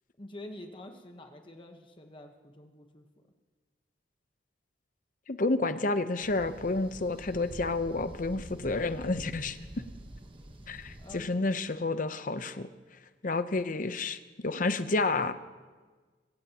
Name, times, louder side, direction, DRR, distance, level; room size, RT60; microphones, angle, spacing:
voice 1, 0.2-3.1 11.0-11.4, left 1 dB, 30° left, 4 dB, 1.1 m, -47 dB
voice 2, 5.3-9.6 10.7-12.7 13.2-15.3, left 3 dB, 45° left, 11 dB, 0.8 m, -30 dB
sound 1, 6.2-11.2, right 1 dB, 30° right, 1.2 m, -46 dB
25.0 x 16.0 x 2.9 m, 1.4 s
head